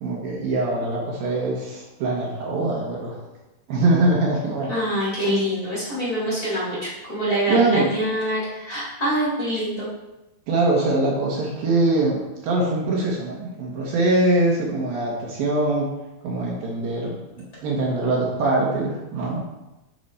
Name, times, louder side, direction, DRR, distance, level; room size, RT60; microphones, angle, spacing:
voice 1, 0.0-3.2 3.7-4.7 7.5-7.9 10.5-15.9 16.2-17.2 17.6-19.4, right 2 dB, 65° right, -3 dB, 3.0 m, -22 dB
voice 2, 4.7-9.9, equal, 20° left, -8 dB, 3.8 m, -25 dB
11.5 x 6.1 x 4.2 m, 1.0 s
omnidirectional pair, 4.7 m